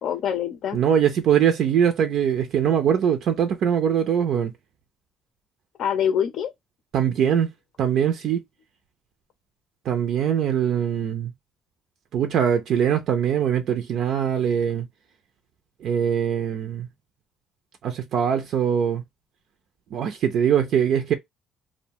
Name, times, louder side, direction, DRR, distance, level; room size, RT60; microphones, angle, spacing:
voice 1, 0.0-0.8 5.8-6.5, left 9 dB, 60° left, 0.5 m, -25 dB
voice 2, 0.7-4.5 6.9-7.5 7.8-8.4 9.8-11.3 12.1-14.9 15.8-16.9 17.8-19.0 19.9-21.1, right 8 dB, 60° right, 0.5 m, -22 dB
2.6 x 2.1 x 2.8 m
cardioid pair, 130°, 0 cm